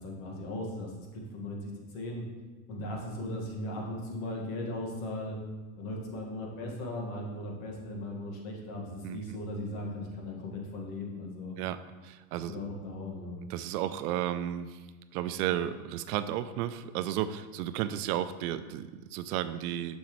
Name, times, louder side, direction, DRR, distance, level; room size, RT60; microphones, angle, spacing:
voice 1, 0.0-2.2 2.7-5.4 5.8-11.6 12.5-13.4, left 1 dB, 65° left, 0 dB, 1.9 m, -38 dB
voice 2, 12.0-12.6 13.5-14.8 15.1-20.0, right 11 dB, 70° right, 12 dB, 0.6 m, -33 dB
6.9 x 6.4 x 3.2 m, 1.3 s
supercardioid pair, 115°, 46 cm